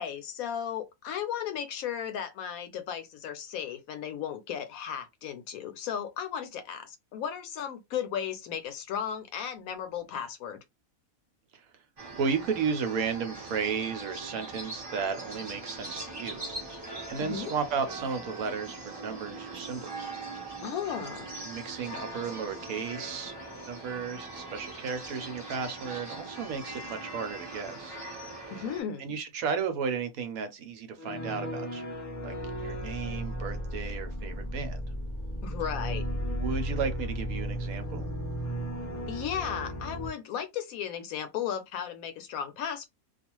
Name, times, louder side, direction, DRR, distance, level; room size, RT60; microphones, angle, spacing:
voice 1, 0.0-10.6 17.3-17.5 20.6-21.3 28.5-29.2 35.4-36.0 39.1-42.8, left 8 dB, 75° left, 1.0 m, -35 dB
sound 1, 12.0-28.8, right 2 dB, 25° right, 0.6 m, -41 dB
voice 2, 12.1-16.4 17.1-20.1 21.4-28.0 29.0-31.9 32.2-34.8 36.3-38.1, right 6 dB, 75° right, 1.0 m, -34 dB
sound 2, 31.0-40.1, equal, 20° left, 0.5 m, -35 dB
2.4 x 2.3 x 2.9 m
omnidirectional pair, 1.6 m